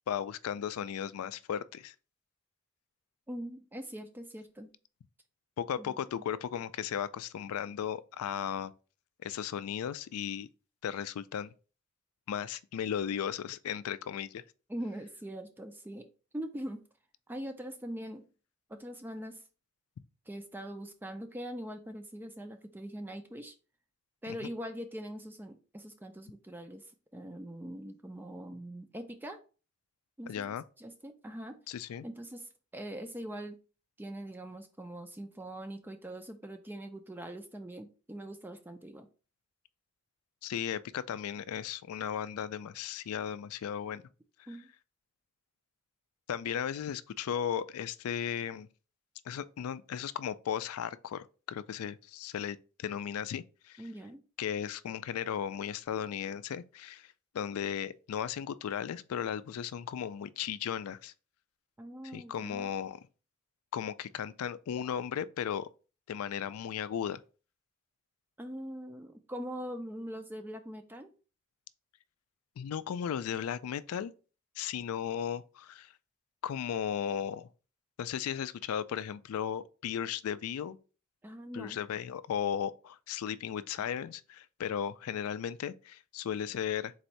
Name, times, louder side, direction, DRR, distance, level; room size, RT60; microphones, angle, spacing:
voice 1, 0.1-1.9 5.6-8.7 9.2-10.5 10.8-11.5 12.3-14.4 30.3-30.6 31.7-32.1 40.4-44.0 46.3-48.7 49.3-53.8 54.4-61.1 62.1-63.0 63.7-65.7 66.1-67.2 72.6-74.1 74.6-75.9 76.4-77.5 78.0-80.8 81.5-86.9, left 8 dB, 90° left, 0.3 m, -36 dB
voice 2, 3.3-4.7 5.8-6.3 14.7-16.1 16.3-16.8 17.3-18.3 18.7-19.4 20.3-23.5 24.2-29.4 30.2-31.6 32.0-33.6 34.0-39.1 44.5-44.7 53.8-54.2 61.8-62.7 68.4-71.1 81.2-81.8, right 1 dB, 10° right, 0.3 m, -42 dB
4.0 x 2.6 x 4.4 m
head